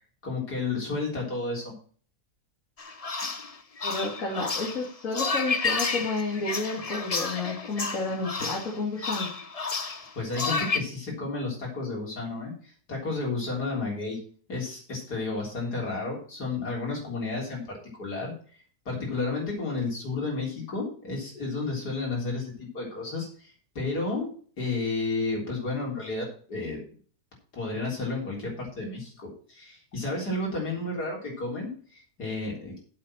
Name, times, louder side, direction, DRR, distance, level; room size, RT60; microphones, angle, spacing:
voice 1, 0.2-1.7 10.2-14.2 14.5-18.6 18.9-24.3 24.6-26.8 27.5-32.8, left 3 dB, 80° left, -2 dB, 4.3 m, -32 dB
sound 1, 2.8-10.8, left 4 dB, 30° left, 0.8 m, -31 dB
voice 2, 3.8-9.3, left 3 dB, 55° left, -2 dB, 2.8 m, -31 dB
8.8 x 7.5 x 6.1 m, 0.44 s
omnidirectional pair, 1.7 m